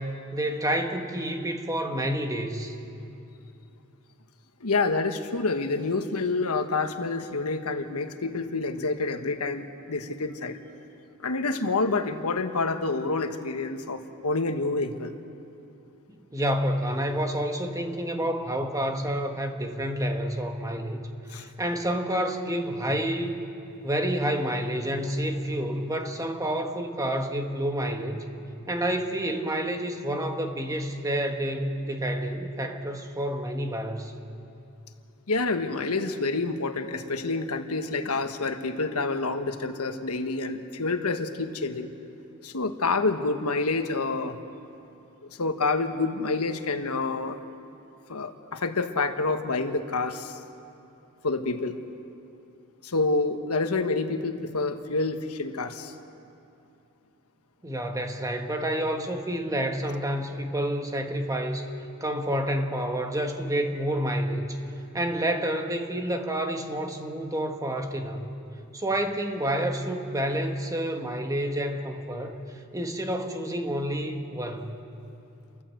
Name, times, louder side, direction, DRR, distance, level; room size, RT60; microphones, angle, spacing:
voice 1, 0.0-2.8 16.3-23.4 23.8-28.3 28.7-34.1 57.6-61.7 62.0-64.6 64.9-68.3 68.7-72.4 72.7-74.8, right 1 dB, 15° right, 4 dB, 1.4 m, -29 dB
voice 2, 4.6-10.6 11.2-15.1 21.3-21.5 35.3-41.9 42.4-44.4 45.2-47.4 48.1-50.4 51.2-51.8 52.8-55.9, left 3 dB, 90° left, 7 dB, 1.4 m, -28 dB
30.0 x 14.5 x 7.8 m, 2.7 s
head